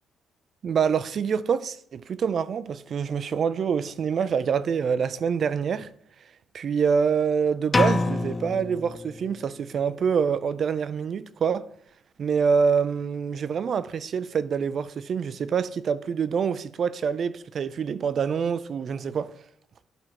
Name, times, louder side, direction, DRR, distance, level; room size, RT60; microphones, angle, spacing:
voice 1, 0.6-5.9 6.5-11.7 12.2-19.3, right 6 dB, 55° right, 0.4 m, -26 dB
sound 1, 7.7-9.6, left 3 dB, 25° left, 0.4 m, -26 dB
12.0 x 4.4 x 2.9 m
cardioid pair, 90°, 0 cm